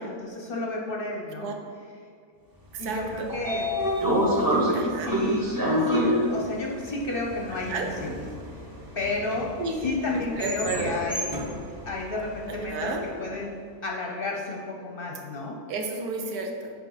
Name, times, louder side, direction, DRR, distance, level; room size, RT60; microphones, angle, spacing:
voice 1, 0.0-1.5 2.8-3.7 4.4-8.2 8.9-9.5 9.8-11.3 11.9-13.5 13.8-15.6, left 2 dB, 45° left, -1 dB, 0.8 m, -32 dB
voice 2, 2.7-3.3 4.7-5.1 7.7-7.9 9.6-9.9 10.1-11.1 12.7-13.0 15.7-16.7, right 3 dB, 85° right, 3 dB, 1.3 m, -32 dB
Train / Sliding door, 2.9-13.0, equal, 20° right, 0.8 m, -28 dB
8.1 x 4.9 x 3.9 m, 2.3 s
omnidirectional pair, 1.6 m